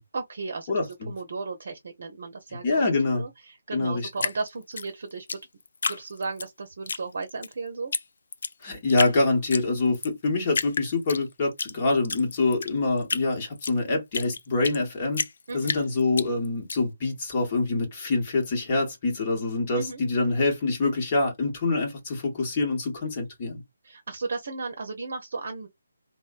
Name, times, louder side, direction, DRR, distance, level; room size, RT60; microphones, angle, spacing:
voice 1, 0.1-0.7 1.1-5.3 5.9-7.9 15.5-15.8 19.7-20.0 23.8-25.7, right 3 dB, 55° right, 0.7 m, -35 dB
voice 2, 0.7-1.1 2.6-3.2 3.7-4.1 8.6-15.2 15.5-23.6, left 3 dB, 30° left, 1.1 m, -25 dB
Drip, 4.2-6.5 6.9-7.5 7.9-8.0 8.3-9.1 9.5-10.1 10.5-11.7 12.0-14.8 15.1-16.8, left 4 dB, 55° left, 0.3 m, -30 dB
3.2 x 2.2 x 2.4 m
figure-of-eight pair, 150°, 0 cm